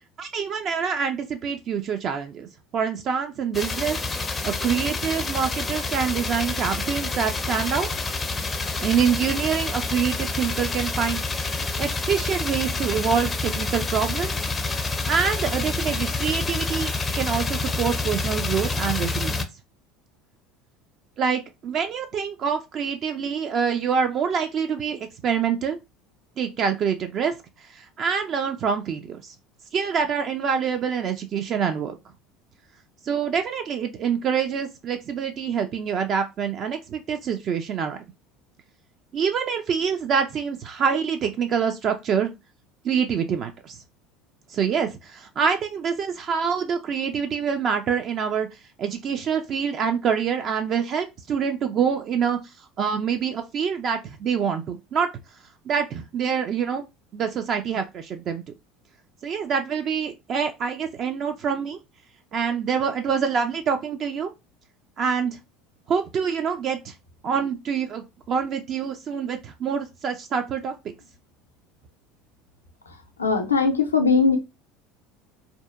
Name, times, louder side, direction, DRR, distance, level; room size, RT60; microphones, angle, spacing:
voice 1, 0.2-2.5 2.7-4.0 4.4-8.2 8.8-11.2 11.8-14.3 15.1-19.5 21.2-25.8 26.4-27.3 27.6-29.3 29.7-32.0 33.0-38.0 39.1-42.3 42.8-43.8 44.5-48.5 48.8-52.4 52.8-55.1 55.7-56.9 57.1-58.4 59.2-61.8 62.3-64.3 65.0-65.4 65.9-66.9 67.2-70.9, right 7 dB, 45° right, 0.3 m, -26 dB
sound 1, 3.5-19.4, left 3 dB, 20° left, 0.4 m, -28 dB
voice 2, 73.2-74.4, left 4 dB, 90° left, 0.4 m, -20 dB
2.6 x 2.1 x 2.4 m
hypercardioid pair, 70°, 0 cm